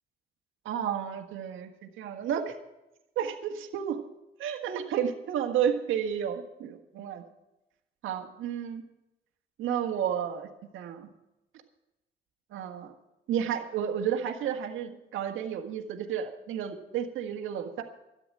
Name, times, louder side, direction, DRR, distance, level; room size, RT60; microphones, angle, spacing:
voice 1, 0.7-2.5 3.2-4.0 4.4-7.2 8.0-8.8 9.6-10.5 10.7-11.1 12.5-12.9 13.3-17.8, right 8 dB, 85° right, 3 dB, 1.7 m, -31 dB
13.0 x 10.0 x 7.8 m, 0.93 s
cardioid pair, 90°, 20 cm